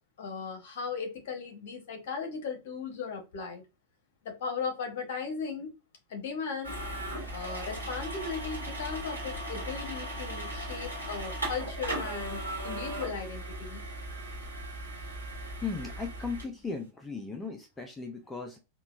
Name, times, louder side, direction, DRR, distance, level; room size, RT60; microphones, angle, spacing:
voice 1, 0.2-3.6 4.2-5.7 6.1-6.8 7.3-13.8 14.2-14.3, left 5 dB, 55° left, 0.9 m, -37 dB
sound 1, 6.6-16.4, right 1 dB, 90° right, 1.0 m, -37 dB
voice 2, 15.6-18.6, left 4 dB, 10° left, 0.4 m, -37 dB
3.7 x 2.2 x 2.3 m
figure-of-eight pair, 90°, 0 cm